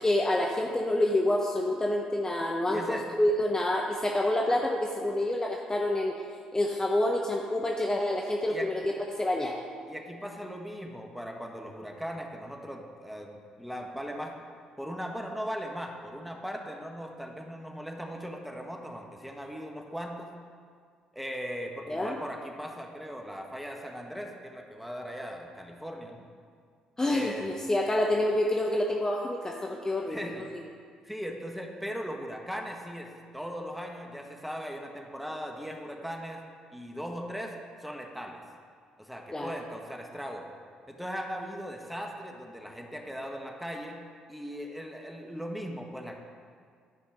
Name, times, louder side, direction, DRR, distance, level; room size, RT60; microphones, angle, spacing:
voice 1, 0.0-6.2 6.5-9.6 21.9-22.2 27.0-30.3 39.3-39.5, left 1 dB, 20° left, 1 dB, 0.9 m, -28 dB
voice 2, 2.7-3.0 8.5-8.7 9.9-14.3 14.8-20.3 21.1-26.3 27.1-27.5 30.1-30.4 31.0-36.4 36.7-37.5 37.8-38.4 39.0-40.5 40.9-44.0 44.3-46.1, equal, ahead, 2 dB, 1.4 m, -38 dB
12.0 x 5.3 x 5.1 m, 2.1 s
hypercardioid pair, 50°, 3 cm